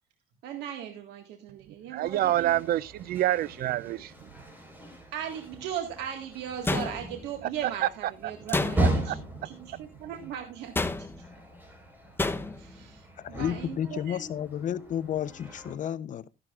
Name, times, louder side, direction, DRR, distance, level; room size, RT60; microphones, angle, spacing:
voice 1, 0.4-2.6 5.1-9.2 9.4-11.1 12.6-14.2, right 9 dB, 85° right, 1.8 m, -38 dB
voice 2, 1.9-4.1 7.8-7.9 8.5-9.2 9.7-9.8, right 14 dB, 65° right, 0.5 m, -27 dB
sound 1, 2.0-15.8, right 1 dB, 10° right, 4.5 m, -37 dB
sound 2, 6.6-7.4 8.5-9.2 10.7-11.3 12.2-12.7, left 2 dB, 15° left, 0.8 m, -30 dB
voice 3, 13.2-16.3, left 10 dB, 50° left, 0.7 m, -32 dB
14.0 x 11.0 x 2.4 m
cardioid pair, 110°, 17 cm